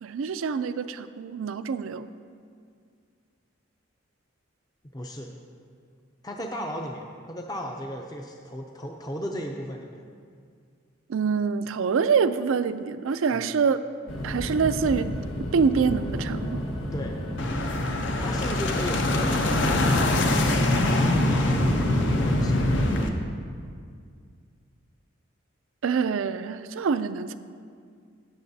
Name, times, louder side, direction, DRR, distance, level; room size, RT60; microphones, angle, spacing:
voice 1, 0.0-2.1 11.1-13.8 14.2-15.1 15.5-16.6 25.8-27.3, right 5 dB, 80° right, 12 dB, 0.4 m, -25 dB
voice 2, 4.9-5.3 6.2-10.0 13.3-13.5 16.9-17.2 18.2-22.6, equal, 20° left, 1 dB, 0.5 m, -36 dB
sound 1, 14.1-23.0, left 1 dB, 80° left, 1.2 m, -26 dB
sound 2, 17.4-23.1, left 3 dB, 60° left, 0.6 m, -29 dB
17.5 x 6.6 x 2.7 m, 2.1 s
head